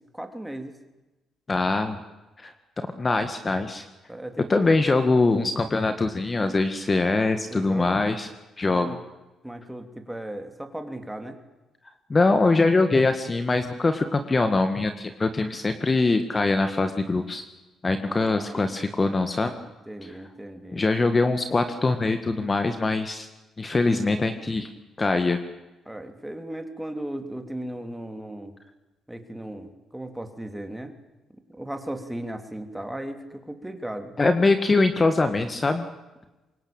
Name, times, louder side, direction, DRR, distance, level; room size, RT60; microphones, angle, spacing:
voice 1, 0.1-0.7 4.1-4.8 7.5-8.0 8.7-9.0 9.4-11.4 18.1-18.7 19.9-20.8 25.8-28.5 29.1-30.9 31.5-34.1, right 1 dB, 5° right, 7 dB, 3.2 m, -36 dB
voice 2, 1.5-2.0 2.4-3.9 4.5-8.3 8.6-9.0 12.1-17.4 17.8-19.5 20.7-23.3 23.6-24.7 25.0-25.4 34.2-35.9, left 3 dB, 25° left, 8 dB, 1.8 m, -23 dB
24.5 x 22.0 x 8.9 m, 1.1 s
cardioid pair, 90°, 0 cm